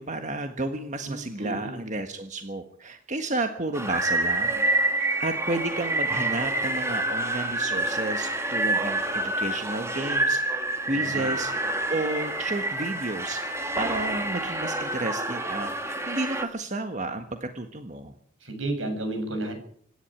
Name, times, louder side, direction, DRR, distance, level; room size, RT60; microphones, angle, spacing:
voice 1, 0.0-4.6 4.9-11.5 11.9-18.1, right 2 dB, 40° right, 6 dB, 1.6 m, -32 dB
voice 2, 0.9-1.8 10.9-11.3 18.4-19.6, right 2 dB, 75° right, 5 dB, 7.3 m, -32 dB
sound 1, 3.7-16.5, right 2 dB, 15° right, 2.4 m, -27 dB
25.5 x 11.5 x 9.0 m, 0.62 s
head